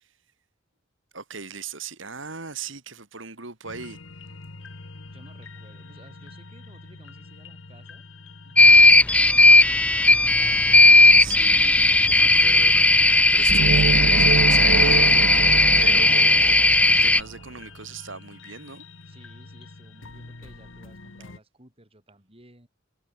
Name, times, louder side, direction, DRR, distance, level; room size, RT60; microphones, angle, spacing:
voice 1, 1.1-4.0 11.0-15.4 15.8-16.6 16.9-18.8, right 4 dB, 75° right, 3.8 m, -38 dB
sound 1, 3.6-21.4, left 3 dB, 80° left, 1.5 m, -44 dB
voice 2, 5.0-8.0 8.4-11.5 19.1-22.7, right 1 dB, 30° right, 7.9 m, -54 dB
sound 2, 8.6-17.2, left 2 dB, 5° left, 0.4 m, -16 dB
sound 3, 13.5-17.3, right 6 dB, 90° right, 0.4 m, -25 dB
head